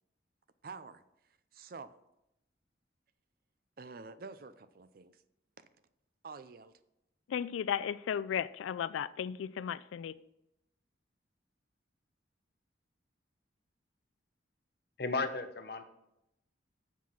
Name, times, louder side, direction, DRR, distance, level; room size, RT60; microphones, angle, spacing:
voice 1, 0.6-1.0 1.5-2.0 3.8-5.2 5.6-5.7 6.2-6.7, right 4 dB, 50° right, 0.4 m, -48 dB
voice 2, 7.3-10.2, left 8 dB, 90° left, 0.3 m, -35 dB
voice 3, 15.0-15.8, left 3 dB, 55° left, 0.7 m, -34 dB
7.3 x 5.7 x 5.9 m
head